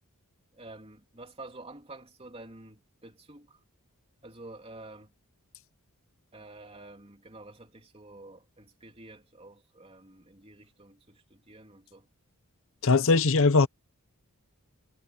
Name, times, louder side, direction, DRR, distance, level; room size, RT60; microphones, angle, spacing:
voice 1, 0.5-3.6 4.2-5.1 6.3-12.1, right 2 dB, 25° right, 3.3 m, -49 dB
voice 2, 12.8-13.7, left 3 dB, 65° left, 0.8 m, -20 dB
head